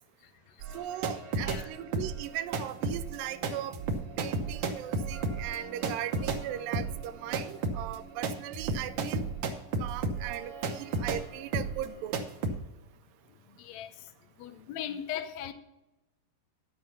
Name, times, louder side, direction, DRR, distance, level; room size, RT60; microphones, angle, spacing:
voice 1, 0.2-0.7 1.4-1.6 13.5-14.1 14.4-15.5, left 10 dB, 70° left, 1.8 m, -39 dB
sound 1, 0.6-1.6 1.9-11.3 11.5-11.9 12.1-12.6, right 3 dB, 65° right, 1.4 m, -33 dB
voice 2, 0.7-3.8 4.2-9.3 9.8-12.2, right 12 dB, 85° right, 2.3 m, -38 dB
11.5 x 6.5 x 5.6 m
omnidirectional pair, 3.9 m